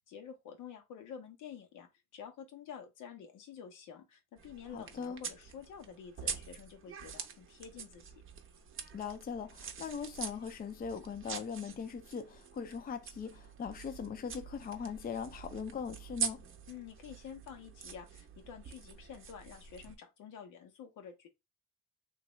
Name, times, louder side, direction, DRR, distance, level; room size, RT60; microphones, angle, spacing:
voice 1, 0.1-8.2 16.7-21.3, left 8 dB, 85° left, 0.8 m, -49 dB
sound 1, 4.4-19.9, right 7 dB, 45° right, 0.6 m, -45 dB
voice 2, 4.7-5.2 8.9-16.4, left 6 dB, 30° left, 0.4 m, -40 dB
2.9 x 2.4 x 3.1 m
cardioid pair, 90°, 30 cm